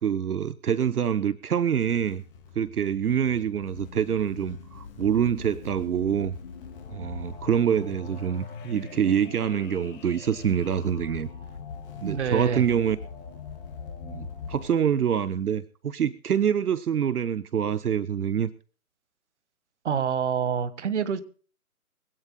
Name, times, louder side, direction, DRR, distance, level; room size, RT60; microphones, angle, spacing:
voice 1, 0.0-2.2 2.6-6.3 6.9-11.3 12.0-13.0 14.0-18.5, right 8 dB, 75° right, 15 dB, 0.9 m, -26 dB
sound 1, 1.8-14.7, left 6 dB, 35° left, 2.7 m, -42 dB
voice 2, 12.0-12.6 19.8-21.2, right 7 dB, 50° right, 14 dB, 1.6 m, -27 dB
23.0 x 17.0 x 2.2 m, 0.40 s
figure-of-eight pair, 145°, 45 cm